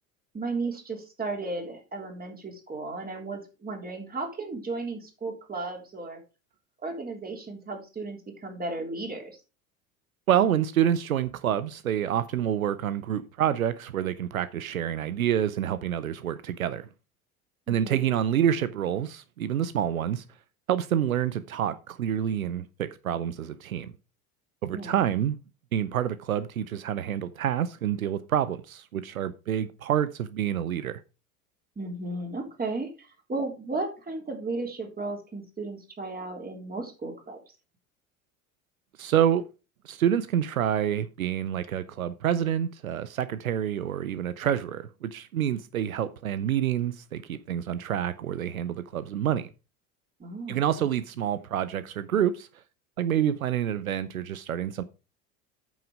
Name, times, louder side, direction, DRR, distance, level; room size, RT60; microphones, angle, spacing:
voice 1, 0.3-6.2 6.8-9.3 17.7-18.1 24.7-24.9 31.7-32.9 33.3-37.4 50.2-50.9, right 3 dB, 20° right, 3.4 m, -34 dB
voice 2, 10.3-16.9 17.7-20.2 20.7-23.9 24.6-25.4 25.7-31.0 39.0-39.4 39.8-49.5 50.5-52.5 53.0-54.8, right 10 dB, 85° right, 0.6 m, -27 dB
8.7 x 6.3 x 4.9 m
hypercardioid pair, 70°, 41 cm